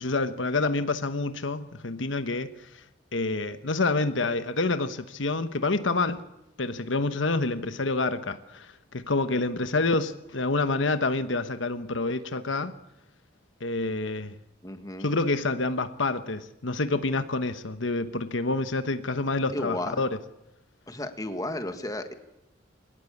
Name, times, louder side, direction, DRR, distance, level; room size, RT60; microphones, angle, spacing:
voice 1, 0.0-2.7 3.1-6.2 6.6-12.8 13.6-14.3 15.0-20.1, left 3 dB, 80° left, 1.2 m, -28 dB
voice 2, 14.6-15.1 19.5-20.0 20.9-22.1, left 1 dB, 20° left, 1.8 m, -33 dB
23.0 x 19.0 x 8.6 m
head